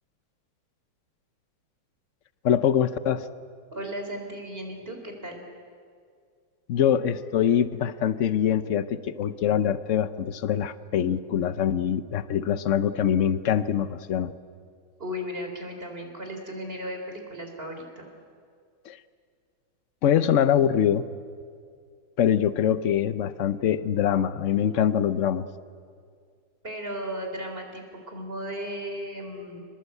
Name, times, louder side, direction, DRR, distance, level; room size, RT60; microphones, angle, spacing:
voice 1, 2.4-3.3 6.7-14.3 18.9-19.0 20.0-21.1 22.2-25.5, left 9 dB, 65° left, 13 dB, 0.7 m, -24 dB
voice 2, 3.7-5.4 15.0-18.1 26.6-29.6, equal, 25° right, 3 dB, 4.0 m, -35 dB
28.5 x 20.5 x 8.2 m, 2.2 s
omnidirectional pair, 2.3 m